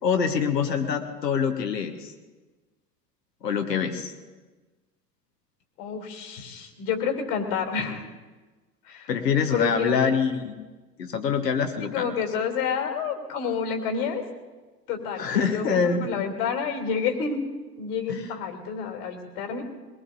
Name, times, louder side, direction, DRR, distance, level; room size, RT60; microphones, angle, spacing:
voice 1, 0.0-2.1 3.4-4.1 9.1-10.6 11.0-12.1 15.2-16.1 18.1-18.2, left 6 dB, 80° left, 6 dB, 1.4 m, -25 dB
voice 2, 5.8-8.0 8.8-9.1 9.5-10.0 11.8-14.2 14.9-17.4 17.8-19.6, left 6 dB, 65° left, 3 dB, 3.2 m, -29 dB
23.0 x 19.0 x 2.6 m, 1.3 s
figure-of-eight pair, 75°, 49 cm